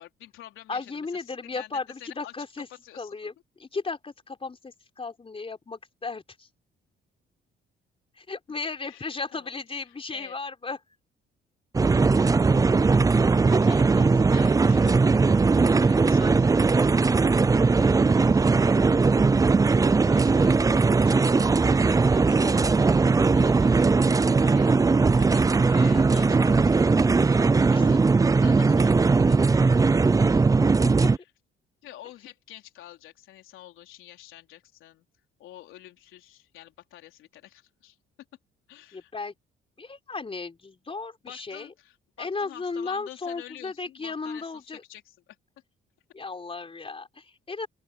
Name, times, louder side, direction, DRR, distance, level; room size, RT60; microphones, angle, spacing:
voice 1, 0.0-1.7 2.0-2.3 2.8-3.2 8.8-9.5 9.9-10.3 13.5-19.2 19.6-26.9 27.7-29.9 30.3-30.5 31.0-31.3 31.8-35.1 35.4-38.0 38.7-39.1 41.3-45.4, left 13 dB, 85° left, 4.0 m, -48 dB
voice 2, 0.7-2.7 3.0-3.3 3.6-6.5 8.2-10.8 22.4-22.8 26.2-26.9 27.3-27.8 31.0-31.1 38.9-39.3 39.8-41.7 42.2-44.8 46.1-47.7, left 4 dB, 30° left, 4.2 m, -35 dB
sound 1, 11.7-31.2, right 4 dB, 15° right, 0.4 m, -20 dB
open air
cardioid pair, 90°, 20 cm